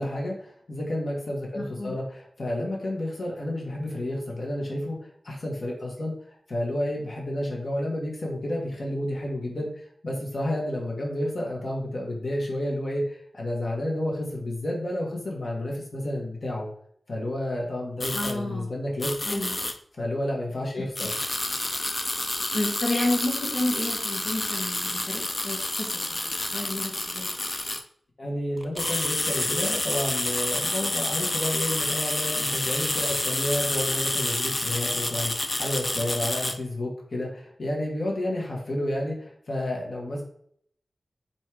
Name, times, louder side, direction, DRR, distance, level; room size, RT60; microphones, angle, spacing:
voice 1, 0.0-16.7 17.1-19.4 20.0-21.2 28.2-40.2, left 1 dB, 60° left, -2 dB, 1.7 m, -31 dB
voice 2, 1.5-2.0 18.1-18.7 19.2-19.5 20.7-20.8 22.5-27.3, left 1 dB, 75° left, -4 dB, 1.5 m, -31 dB
sound 1, 18.0-18.3 19.0-19.7 21.0-27.8 28.6-36.5, left 2 dB, 35° left, 0.6 m, -29 dB
4.5 x 4.3 x 4.9 m, 0.64 s
wide cardioid pair, 100°, 0 cm